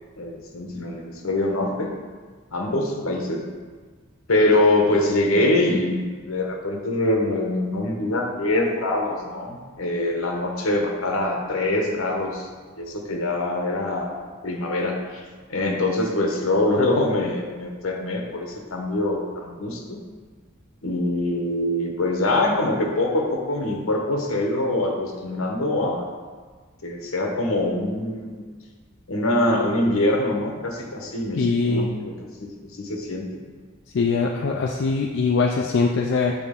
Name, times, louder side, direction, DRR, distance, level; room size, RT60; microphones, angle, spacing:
voice 1, 0.2-1.9 2.5-3.5 4.3-12.5 12.8-14.2 14.4-15.2 15.5-20.0 20.8-26.0 26.8-28.4 29.1-33.4, left 1 dB, 75° left, 1 dB, 1.1 m, -24 dB
voice 2, 31.4-31.9 33.9-36.3, left 4 dB, 60° left, 1 dB, 0.4 m, -22 dB
7.7 x 4.1 x 3.7 m, 1.5 s
head